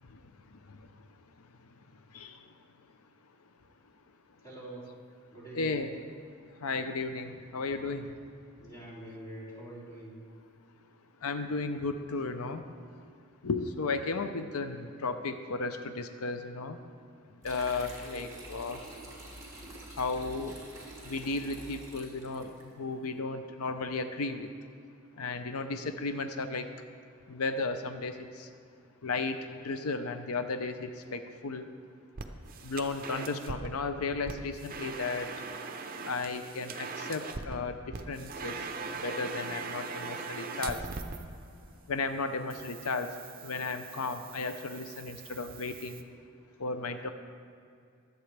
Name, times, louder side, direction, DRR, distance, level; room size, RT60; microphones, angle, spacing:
voice 1, 4.4-4.8 5.3-5.9 8.6-10.1, right 1 dB, 15° left, -7 dB, 3.2 m, -45 dB
voice 2, 5.5-5.9 6.6-8.1 11.2-12.7 13.4-16.8 17.4-18.8 20.0-20.5 21.0-24.5 25.2-26.7 27.3-28.5 29.0-29.4 29.6-31.7 32.6-35.3 36.0-37.8 38.1-38.6 39.0-40.8 41.9-43.1 43.4-46.0 46.6-47.1, left 3 dB, 80° left, 8 dB, 0.6 m, -34 dB
sound 1, 17.4-22.6, right 1 dB, 15° right, 2.4 m, -47 dB
sound 2, 32.2-33.7 34.2-37.6 37.9-41.2 42.5-46.0, right 4 dB, 40° right, 0.7 m, -41 dB
23.5 x 8.2 x 3.4 m, 2.3 s
head